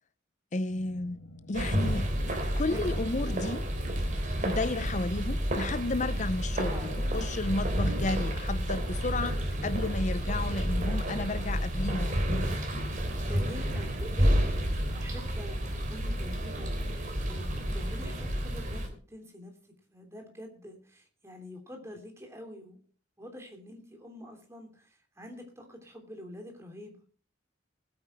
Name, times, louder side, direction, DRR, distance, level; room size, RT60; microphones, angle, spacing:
voice 1, 0.5-1.2 1.5-2.1 2.5-3.6 4.4-9.4 9.6-12.2, left 2 dB, 40° left, 0.6 m, -32 dB
sound 1, 0.7-18.7, left 1 dB, 55° left, 2.3 m, -50 dB
sound 2, 1.5-18.9, equal, 40° right, 3.1 m, -30 dB
voice 2, 2.5-3.4 6.6-7.1 13.2-22.8 23.2-27.0, equal, 15° right, 3.0 m, -46 dB
20.0 x 8.8 x 4.4 m
head